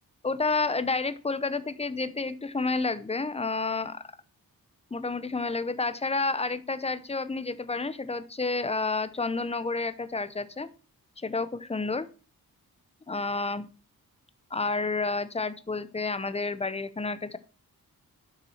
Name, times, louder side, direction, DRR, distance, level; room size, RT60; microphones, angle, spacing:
voice 1, 0.2-4.0 4.9-10.7 11.2-12.1 13.1-13.7 14.5-17.4, left 3 dB, 15° left, 14 dB, 0.8 m, -30 dB
11.5 x 6.1 x 5.6 m, 0.35 s
wide cardioid pair, 130°, 36 cm